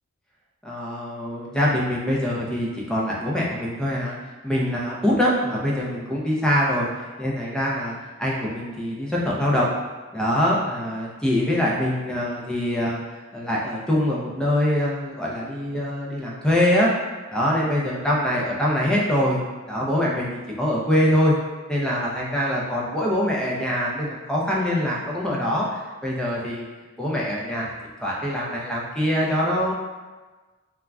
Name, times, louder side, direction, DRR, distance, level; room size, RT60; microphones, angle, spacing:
voice 1, 0.6-4.2 4.4-9.7 10.1-13.0 13.3-16.9 17.3-19.4 19.7-21.3 21.7-26.6 27.0-27.7 28.0-29.7, equal, 5° left, -5 dB, 0.3 m, -24 dB
2.3 x 2.1 x 3.4 m, 1.3 s
head